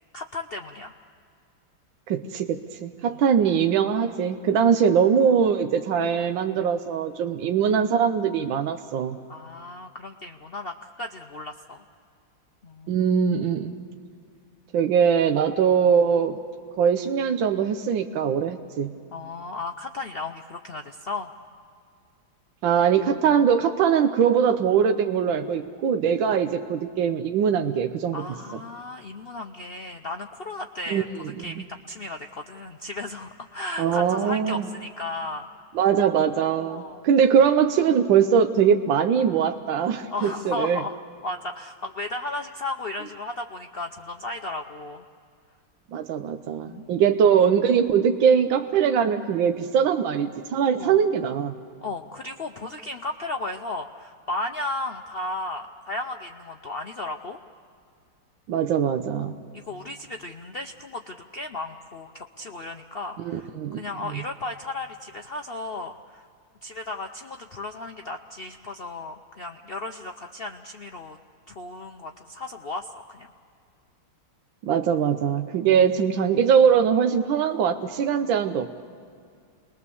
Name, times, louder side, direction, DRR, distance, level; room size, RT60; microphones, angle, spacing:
voice 1, 0.1-0.9 3.1-3.2 4.5-4.7 9.3-11.8 12.6-13.0 19.1-21.3 26.2-26.4 28.1-35.5 36.7-37.0 40.1-45.0 46.7-46.9 50.8-51.0 51.8-57.4 59.2-66.3 66.6-71.2 71.5-73.3, left 2 dB, 80° left, 4 dB, 0.5 m, -35 dB
voice 2, 2.1-9.2 12.9-13.7 14.7-16.4 16.8-18.9 22.6-28.2 30.9-31.6 33.8-34.7 35.7-40.8 45.9-51.5 58.5-59.4 63.2-63.8 64.1-64.2 74.6-78.9, right 7 dB, 80° right, 6 dB, 1.5 m, -22 dB
28.5 x 21.0 x 7.0 m, 2.2 s
omnidirectional pair, 2.1 m